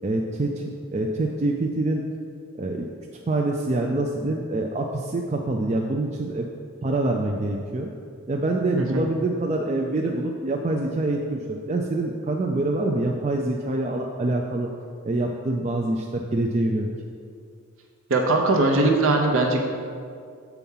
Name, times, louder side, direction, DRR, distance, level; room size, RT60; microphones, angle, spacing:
voice 1, 0.0-2.0 2.5-2.9 3.3-6.5 6.8-7.9 8.3-14.7 15.0-16.9, right 2 dB, 30° right, 1 dB, 0.3 m, -25 dB
voice 2, 18.1-19.6, right 2 dB, 65° right, 2 dB, 0.7 m, -20 dB
7.0 x 4.6 x 5.4 m, 2.2 s
head